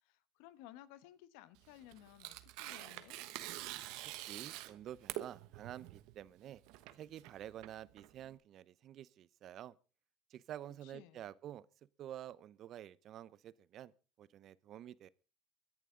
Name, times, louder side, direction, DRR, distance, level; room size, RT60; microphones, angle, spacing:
voice 1, 0.0-3.2 10.8-11.3, left 13 dB, 85° left, 1.2 m, -57 dB
Tearing, 1.6-8.3, right 16 dB, 80° right, 1.1 m, -47 dB
voice 2, 4.0-6.6 7.0-9.7 10.3-11.7 12.0-13.9 14.2-15.1, right 11 dB, 55° right, 0.8 m, -49 dB
23.0 x 11.0 x 3.8 m
supercardioid pair, 95°, 0 cm